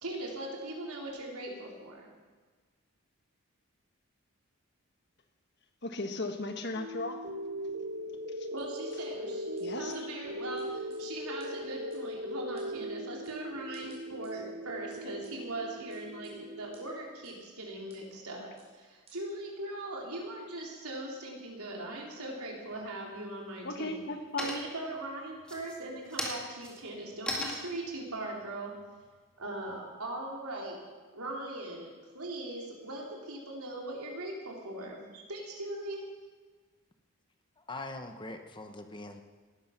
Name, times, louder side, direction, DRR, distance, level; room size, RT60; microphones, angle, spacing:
voice 1, 0.0-2.1 8.5-24.0 24.4-28.7 29.4-30.8 31.1-31.9 32.1-36.0, right 1 dB, 85° right, -1 dB, 3.8 m, -40 dB
voice 2, 5.8-7.2 8.4-8.5 9.6-10.1 23.6-24.6, left 2 dB, 50° left, 6 dB, 1.5 m, -36 dB
sound 1, 6.7-16.7, equal, 55° right, 1.8 m, -39 dB
sound 2, 8.6-9.0 9.6-9.7 9.9-10.0 10.6-11.0 11.4-11.5 11.9-12.0 12.6-12.7 13.2-13.4 13.7-14.3 14.9-15.3 15.9-16.3 16.7-16.8 17.2-17.3 17.9-18.0 18.6-18.7 19.1-19.2, right 5 dB, 30° right, 4.6 m, -60 dB
sound 3, 22.7-23.3 23.7-24.1 24.4-24.9 25.4-29.8, left 1 dB, 5° left, 2.0 m, -39 dB
voice 3, 37.6-39.2, left 2 dB, 20° left, 6 dB, 1.0 m, -42 dB
18.5 x 11.5 x 6.0 m, 1.4 s
head